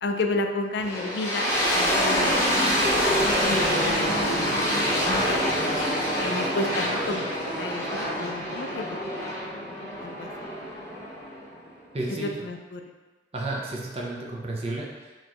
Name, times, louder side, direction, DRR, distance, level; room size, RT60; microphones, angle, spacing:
voice 1, 0.0-3.1 3.4-4.3 4.7-5.8 6.2-7.3 7.6-8.9 9.7-10.3 12.2-12.8, left 2 dB, 65° left, 5 dB, 0.4 m, -32 dB
sound 1, 0.8-11.7, equal, 15° left, 0.9 m, -26 dB
voice 2, 11.9-12.3 13.3-15.1, right 2 dB, 35° right, -2 dB, 0.6 m, -32 dB
4.2 x 3.1 x 3.0 m, 1.2 s
head